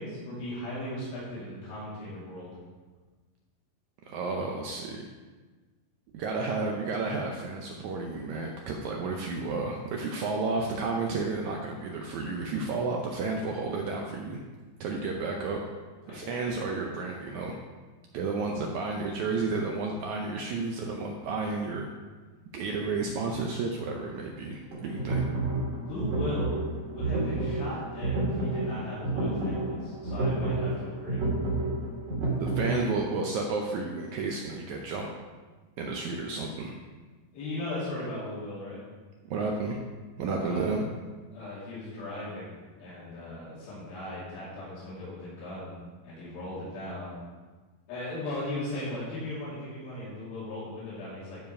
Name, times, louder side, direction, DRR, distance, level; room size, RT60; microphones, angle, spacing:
voice 1, 0.0-2.5 16.1-16.9 25.8-26.6 26.8-31.2 37.3-38.8 40.4-40.7 41.3-42.5 42.8-45.7 46.0-47.1 47.9-51.4, left 1 dB, 80° left, -9 dB, 4.5 m, -37 dB
voice 2, 4.0-5.1 6.1-14.4 14.8-15.6 16.1-17.6 18.1-21.9 22.5-25.2 32.3-35.1 35.8-36.8 39.2-39.8 40.2-40.8, right 3 dB, 85° right, 1 dB, 1.6 m, -32 dB
sound 1, 24.7-32.8, right 2 dB, 45° right, 2.9 m, -30 dB
12.5 x 4.8 x 4.8 m, 1.3 s
omnidirectional pair, 4.3 m